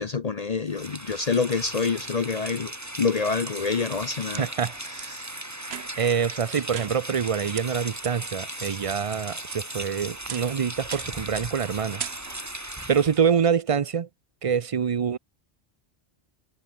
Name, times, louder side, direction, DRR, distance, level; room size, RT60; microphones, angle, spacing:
voice 1, 0.0-4.5 4.9-5.3, left 4 dB, 40° left, 0.8 m, -27 dB
Rain, 0.7-13.3, right 1 dB, 15° right, 2.1 m, -37 dB
sound 1, 3.9-4.4 5.0-5.1 5.6-6.1 6.7-7.3 7.6-7.7 8.0-8.1 8.6-9.2 9.5-9.9 10.3-10.6 10.9-11.2 11.5-11.7 12.0-12.6, right 9 dB, 75° right, 1.1 m, -39 dB
voice 2, 4.4-5.1 6.0-12.0 12.9-14.1 14.4-15.2, right 7 dB, 40° right, 0.5 m, -25 dB
omnidirectional pair, 1.1 m